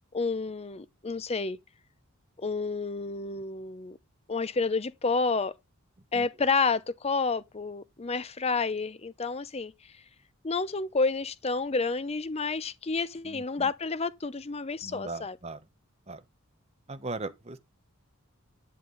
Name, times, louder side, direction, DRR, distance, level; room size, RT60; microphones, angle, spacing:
voice 1, 0.1-1.6 2.4-4.0 4.3-5.5 6.1-9.7 10.4-15.4, left 4 dB, 30° left, 0.6 m, -30 dB
voice 2, 13.2-13.7 14.8-15.6 16.1-16.2 16.9-17.6, right 3 dB, 30° right, 1.0 m, -39 dB
11.0 x 7.4 x 3.9 m
head